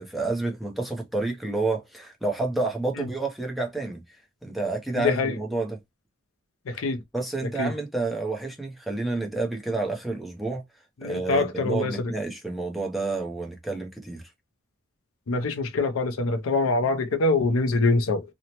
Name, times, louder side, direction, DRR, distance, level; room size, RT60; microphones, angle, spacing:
voice 1, 0.0-4.0 4.4-5.8 7.1-10.6 11.0-14.2, right 3 dB, ahead, 0.5 m, -29 dB
voice 2, 5.0-5.3 6.7-7.0 7.6-7.7 11.0-12.1 15.3-18.2, left 3 dB, 80° left, 0.5 m, -24 dB
2.9 x 2.0 x 2.8 m
head